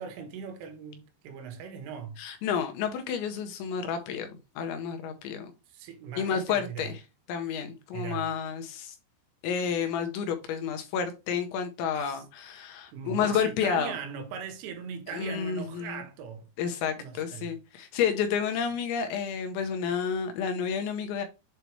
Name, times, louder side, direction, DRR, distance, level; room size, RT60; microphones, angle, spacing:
voice 1, 0.0-2.2 5.7-6.9 7.9-8.3 12.0-12.2 12.9-16.5 17.0-17.5, right 7 dB, 85° right, 3.7 m, -39 dB
voice 2, 2.2-5.5 6.2-7.0 7.3-9.0 9.4-13.9 15.1-16.0 16.6-21.3, left 7 dB, 80° left, 2.8 m, -30 dB
7.9 x 3.1 x 4.6 m
omnidirectional pair, 5.6 m